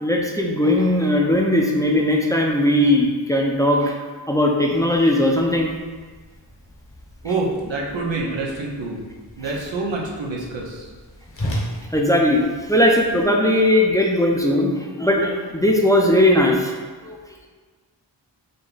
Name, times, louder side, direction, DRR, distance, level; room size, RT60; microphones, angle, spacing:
voice 1, 0.0-3.9 4.3-5.7 11.9-16.7 17.0-17.2, left 1 dB, 10° left, -1 dB, 0.6 m, -18 dB
Whoosh swoosh swish, 5.5-13.2, equal, 30° left, 1.0 m, -36 dB
voice 2, 7.2-9.0 9.4-10.9, right 3 dB, 85° right, -3 dB, 0.9 m, -26 dB
5.1 x 2.2 x 3.9 m, 1.4 s
wide cardioid pair, 45°, 44 cm